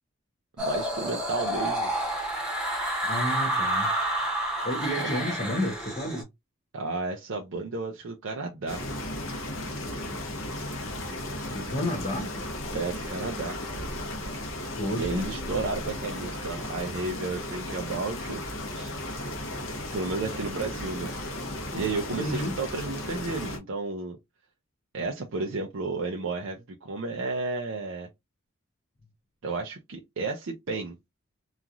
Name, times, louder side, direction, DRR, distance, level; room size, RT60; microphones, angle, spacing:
sound 1, 0.6-6.2, right 1 dB, 5° right, 0.9 m, -29 dB
voice 1, 0.6-1.9 5.0-5.1 6.7-8.9 12.7-13.6 14.9-18.4 18.7-19.0 19.9-21.1 21.7-24.2 24.9-28.1 29.4-31.0, right 3 dB, 65° right, 0.5 m, -32 dB
voice 2, 3.0-3.9 4.6-6.2 11.5-12.3 14.8-15.3 22.2-22.6, left 1 dB, 35° left, 0.6 m, -31 dB
sound 2, 8.7-23.6, left 1 dB, 70° left, 0.9 m, -35 dB
2.9 x 2.4 x 2.4 m
head